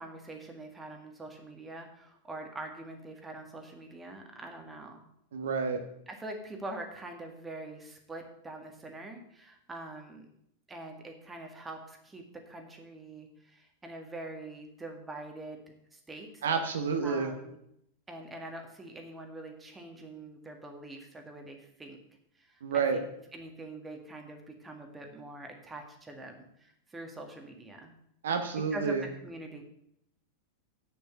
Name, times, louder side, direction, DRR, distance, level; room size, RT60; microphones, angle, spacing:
voice 1, 0.0-5.0 6.1-10.3 10.7-16.4 17.0-17.6 18.1-22.0 22.4-23.1 23.3-27.9 28.7-29.6, right 2 dB, 10° right, 3 dB, 1.9 m, -44 dB
voice 2, 5.3-5.8 16.4-17.3 22.6-23.0 28.2-29.0, right 5 dB, 65° right, 6 dB, 1.1 m, -29 dB
8.0 x 7.0 x 7.9 m, 0.75 s
figure-of-eight pair, 90°, 0 cm